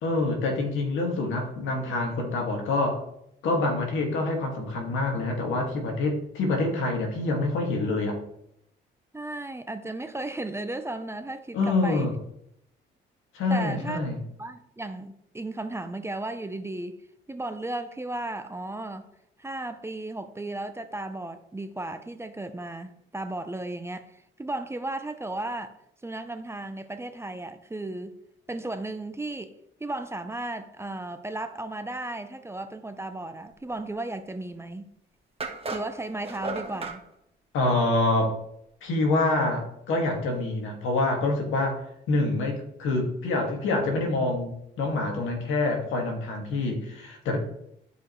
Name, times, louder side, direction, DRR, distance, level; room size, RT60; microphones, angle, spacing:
voice 1, 0.0-3.0 3.4-8.2 11.5-12.1 13.3-14.2 37.5-38.4 38.8-41.8 42.1-47.4, left 2 dB, 85° left, 2.1 m, -26 dB
voice 2, 9.1-12.1 13.5-14.0 14.4-17.0 17.3-19.1 19.4-25.8 26.0-28.2 28.5-34.9 35.7-37.0, right 2 dB, 15° right, 0.7 m, -35 dB
sound 1, 34.6-34.7 35.4-37.0, right 3 dB, 30° right, 1.3 m, -35 dB
12.0 x 5.1 x 3.1 m
cardioid pair, 90°, 20 cm